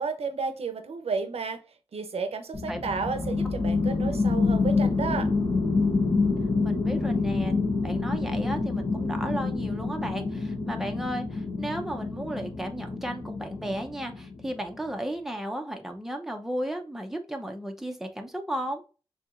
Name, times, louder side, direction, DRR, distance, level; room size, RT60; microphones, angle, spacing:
voice 1, 0.0-1.6 1.9-5.3, right 4 dB, 80° right, 0.7 m, -32 dB
sound 1, 2.5-14.6, left 3 dB, 50° left, 1.0 m, -27 dB
voice 2, 6.6-18.8, right 1 dB, 5° right, 0.7 m, -34 dB
6.9 x 2.8 x 2.5 m
wide cardioid pair, 130°, 10 cm